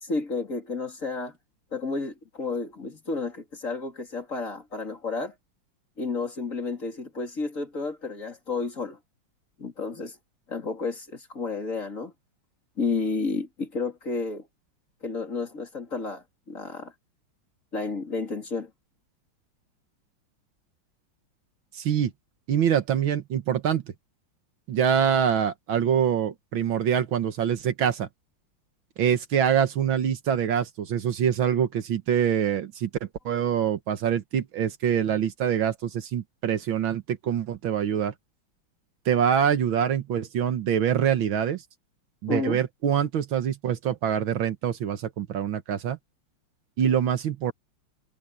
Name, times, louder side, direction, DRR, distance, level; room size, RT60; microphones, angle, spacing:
voice 1, 0.0-1.3 1.7-5.3 6.0-9.0 9.6-10.2 10.5-12.1 12.8-14.5 15.0-16.9 17.7-18.7 42.3-42.6, left 4 dB, 35° left, 3.4 m, -31 dB
voice 2, 21.7-22.1 22.5-23.8 24.7-28.1 29.0-32.9 33.3-38.1 39.1-41.6 42.2-46.0 46.8-47.5, right 8 dB, 70° right, 1.9 m, -25 dB
omnidirectional pair, 2.3 m